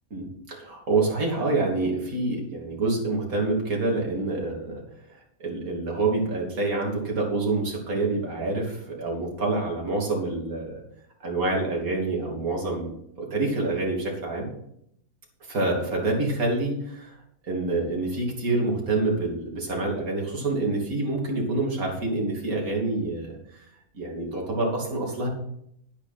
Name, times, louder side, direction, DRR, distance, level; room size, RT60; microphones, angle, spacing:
voice 1, 0.1-4.8 5.1-10.8 11.2-14.5 15.5-17.1 17.4-23.6 23.9-25.3, right 2 dB, 70° right, -1 dB, 3.1 m, -27 dB
10.5 x 10.5 x 4.3 m, 0.72 s
omnidirectional pair, 1.6 m